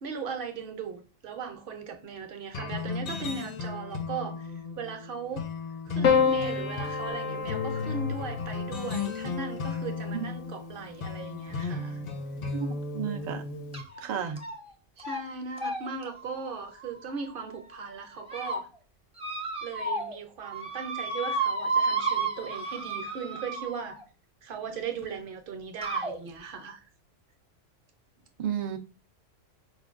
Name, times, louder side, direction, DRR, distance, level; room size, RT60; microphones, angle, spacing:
voice 1, 0.0-5.5 5.9-12.0 15.0-18.7 19.6-24.0 24.4-26.9, right 5 dB, 55° right, 0.7 m, -38 dB
sound 1, 2.5-13.8, left 4 dB, 55° left, 0.5 m, -35 dB
Piano, 6.0-10.5 11.7-12.4, left 6 dB, 70° left, 0.9 m, -30 dB
voice 2, 12.5-13.4 14.0-14.4 28.4-28.8, right 8 dB, 85° right, 0.3 m, -33 dB
sound 2, 13.7-14.0 14.4-14.7 15.0-15.2 15.6-17.5 18.0-18.6 19.2-20.2 20.4-24.0 25.0-25.1 25.8-26.2, right 3 dB, 10° right, 0.4 m, -32 dB
4.9 x 2.2 x 2.4 m
omnidirectional pair, 1.3 m